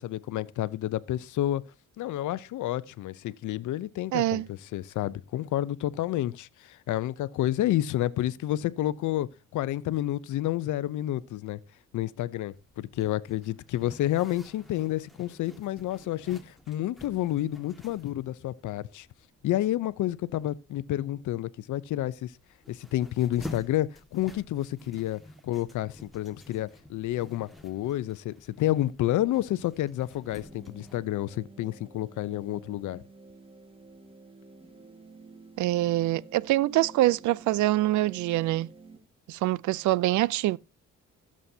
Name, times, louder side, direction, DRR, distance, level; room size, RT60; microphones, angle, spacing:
voice 1, 0.0-1.6 2.0-11.6 11.9-19.1 19.4-22.3 22.7-33.0, left 14 dB, 75° left, 0.7 m, -30 dB
voice 2, 4.1-4.5 35.6-38.7 39.3-40.6, right 16 dB, 75° right, 0.5 m, -25 dB
Zipper (clothing), 12.5-31.1, left 1 dB, ahead, 1.8 m, -50 dB
sound 1, 30.2-39.0, right 3 dB, 15° right, 1.7 m, -51 dB
16.0 x 7.6 x 2.8 m
cardioid pair, 90°, 30 cm